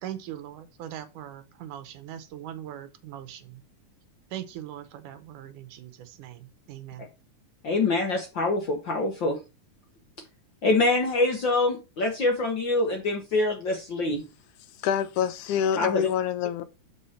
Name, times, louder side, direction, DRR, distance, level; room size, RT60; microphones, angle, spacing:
voice 1, 0.0-3.6 4.3-7.0, right 11 dB, 85° right, 2.4 m, -40 dB
voice 2, 7.6-9.4 10.6-14.2 15.8-16.1, left 2 dB, 60° left, 1.2 m, -25 dB
voice 3, 14.8-16.6, left 9 dB, 85° left, 2.2 m, -26 dB
6.4 x 5.4 x 5.6 m
omnidirectional pair, 3.6 m